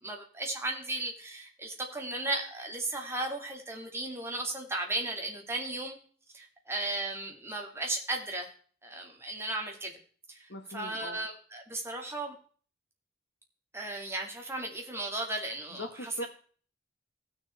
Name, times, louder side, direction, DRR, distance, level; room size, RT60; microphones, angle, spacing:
voice 1, 0.0-6.0 6.3-8.5 8.8-9.9 10.3-12.4 13.7-16.3, right 2 dB, 15° right, 1 dB, 2.4 m, -35 dB
voice 2, 10.5-11.2 15.7-16.3, left 1 dB, 60° left, 6 dB, 1.8 m, -40 dB
16.5 x 6.5 x 4.4 m, 0.44 s
head